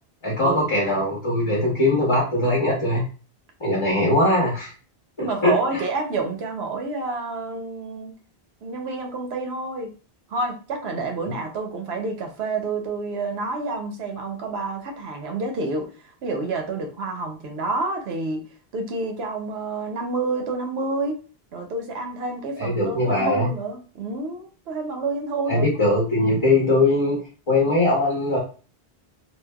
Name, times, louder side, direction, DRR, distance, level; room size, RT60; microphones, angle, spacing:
voice 1, 0.2-3.0 3.6-4.7 5.2-5.8 11.2-11.3 22.6-23.5 25.5-27.2 27.5-28.4, left 2 dB, 30° left, -4 dB, 0.8 m, -21 dB
voice 2, 5.2-8.1 8.6-9.9 10.3-15.9 16.2-18.4 18.7-21.2 21.5-25.7, right 3 dB, 80° right, 4 dB, 0.9 m, -28 dB
3.2 x 2.0 x 2.2 m, 0.37 s
omnidirectional pair, 1.1 m